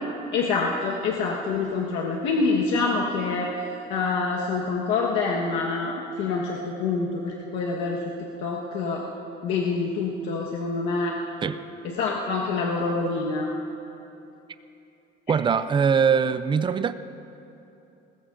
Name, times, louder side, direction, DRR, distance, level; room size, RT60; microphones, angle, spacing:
voice 1, 0.3-3.6 3.9-8.0 8.4-9.0 9.4-11.2 11.8-13.5, left 4 dB, 90° left, -2 dB, 1.3 m, -26 dB
voice 2, 15.3-16.9, right 6 dB, 25° right, 12 dB, 0.4 m, -22 dB
21.0 x 20.0 x 2.6 m, 2.9 s
cardioid pair, 140°, 19 cm